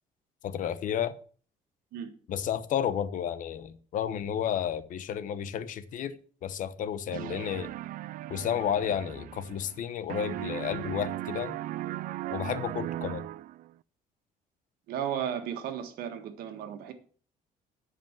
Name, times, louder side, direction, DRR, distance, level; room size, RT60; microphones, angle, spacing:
voice 1, 0.4-1.1 2.3-6.2 6.4-7.7 8.3-11.6 12.3-13.2, left 9 dB, 60° left, 0.9 m, -32 dB
sound 1, 7.1-9.8 10.1-13.7, right 15 dB, 65° right, 0.4 m, -37 dB
voice 2, 14.9-16.9, right 9 dB, 90° right, 1.6 m, -34 dB
10.5 x 5.2 x 7.4 m
cardioid pair, 135°, 15 cm